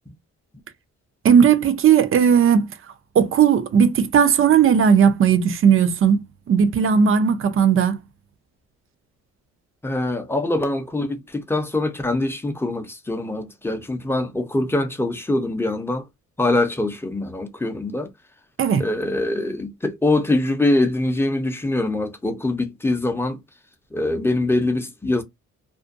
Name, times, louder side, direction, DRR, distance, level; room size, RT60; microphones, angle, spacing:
voice 1, 1.2-2.7 3.2-8.0 18.6-18.8, right 7 dB, 45° right, 0.5 m, -16 dB
voice 2, 9.8-16.0 16.4-18.1 18.8-23.4 23.9-25.2, left 2 dB, 10° left, 0.6 m, -23 dB
2.5 x 2.1 x 2.5 m
cardioid pair, 90°, 30 cm